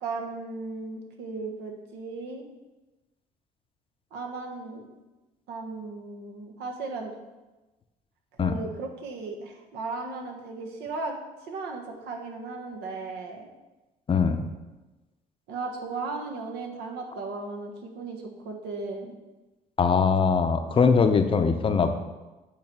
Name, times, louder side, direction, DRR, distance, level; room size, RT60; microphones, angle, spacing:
voice 1, 0.0-2.5 4.1-4.9 5.5-7.1 8.4-11.2 11.5-13.5 15.5-19.1, right 3 dB, 80° right, 1 dB, 1.3 m, -36 dB
voice 2, 14.1-14.4 19.8-22.0, left 5 dB, 30° left, 7 dB, 0.6 m, -21 dB
8.7 x 3.3 x 6.0 m, 1.1 s
cardioid pair, 110°, 17 cm